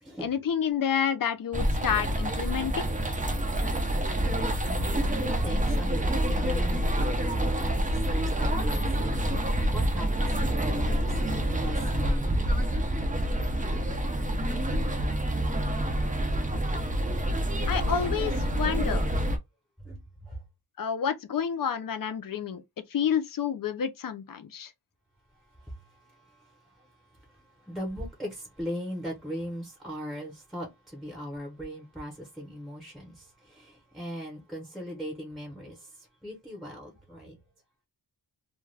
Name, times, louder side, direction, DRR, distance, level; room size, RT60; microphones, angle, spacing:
voice 1, 0.2-2.9 17.7-19.1 20.8-22.6 22.9-24.7, left 8 dB, 45° left, 0.5 m, -29 dB
sound 1, 1.5-19.4, right 1 dB, 20° right, 0.4 m, -27 dB
voice 2, 3.9-4.4 4.7-12.8 19.8-20.4 25.6-26.9 27.3-35.9 36.2-37.4, equal, ahead, 0.8 m, -39 dB
2.3 x 2.2 x 3.2 m
wide cardioid pair, 150°, 48 cm